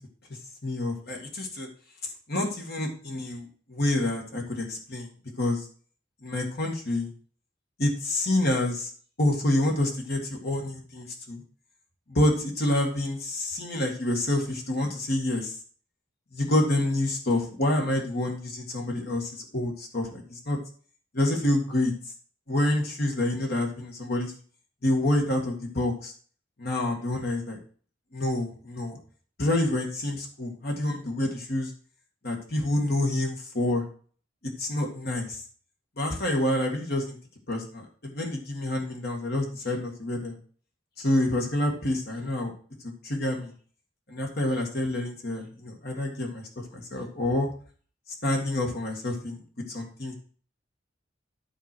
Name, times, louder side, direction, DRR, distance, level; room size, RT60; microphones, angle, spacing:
voice 1, 0.6-1.7 2.3-5.1 5.4-5.7 6.2-7.1 7.8-8.9 9.2-11.4 12.1-15.5 16.3-20.6 21.1-21.9 22.5-24.3 24.8-26.1 26.6-27.6 28.1-29.0 29.4-31.7 32.2-33.8 34.6-35.4 36.0-37.2 37.5-40.4 41.0-42.5 43.0-43.5 44.1-47.5 48.2-49.4 49.7-50.1, left 1 dB, 55° left, 1 dB, 2.1 m, -27 dB
11.0 x 4.4 x 6.1 m, 0.43 s
head